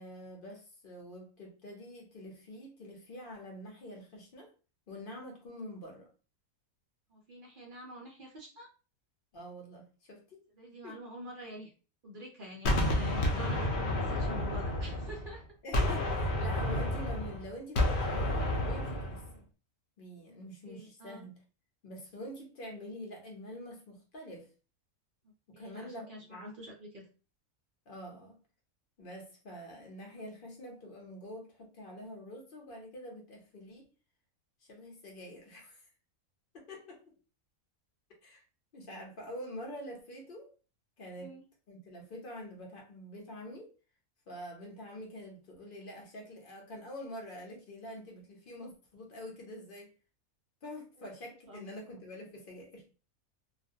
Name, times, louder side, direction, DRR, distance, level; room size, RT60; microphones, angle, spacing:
voice 1, 0.0-4.5 4.9-6.1 9.3-10.4 10.8-11.0 15.6-19.4 20.0-21.4 21.8-24.5 25.5-26.6 27.9-28.4 29.0-33.8 34.7-35.9 36.5-37.0 38.2-38.4 38.7-40.5 41.0-41.3 41.7-43.7 44.3-49.9 50.6-52.9, equal, 50° left, 0.7 m, -46 dB
voice 2, 7.1-8.7 10.6-11.7 12.0-15.4 20.6-21.3 25.5-27.1 41.2-41.4 51.5-51.7, equal, 60° right, 0.5 m, -46 dB
Gunshot gunfire, 12.6-15.4 15.7-19.3, left 1 dB, 90° left, 0.4 m, -30 dB
2.4 x 2.1 x 2.6 m
omnidirectional pair, 1.5 m